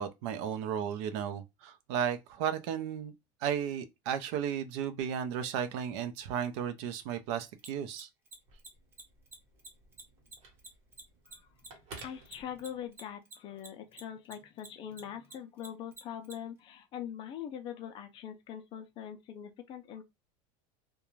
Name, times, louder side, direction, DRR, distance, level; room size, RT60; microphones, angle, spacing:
voice 1, 0.0-3.1 3.4-8.1, right 8 dB, 65° right, 0.5 m, -34 dB
Mechanisms, 7.6-14.3 14.6-16.3, right 3 dB, 15° right, 0.6 m, -48 dB
Telephone, 8.3-13.1, right 3 dB, 40° right, 1.0 m, -54 dB
voice 2, 12.0-20.0, left 9 dB, 30° left, 0.4 m, -42 dB
2.4 x 2.2 x 3.0 m
supercardioid pair, 160°, 16 cm